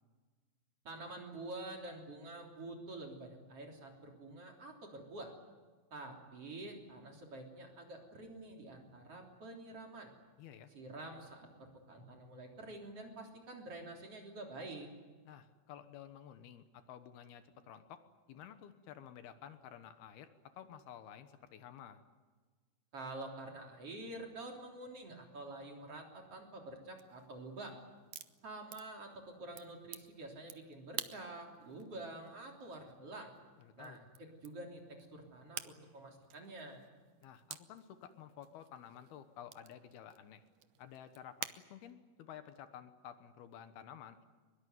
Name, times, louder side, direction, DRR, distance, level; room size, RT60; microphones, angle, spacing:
voice 1, 0.8-5.3 5.9-10.1 10.7-14.9 22.9-27.8 28.4-33.3 33.8-34.0 34.4-36.8, right 2 dB, 40° right, 2 dB, 4.1 m, -48 dB
voice 2, 10.4-10.7 15.3-18.0 18.3-20.3 20.5-22.0 33.6-34.0 37.2-40.4 40.8-44.3, left 9 dB, 75° left, 10 dB, 3.1 m, -52 dB
sound 1, 27.0-41.6, right 13 dB, 70° right, 2.0 m, -52 dB
23.0 x 22.0 x 9.4 m, 1.4 s
omnidirectional pair, 4.6 m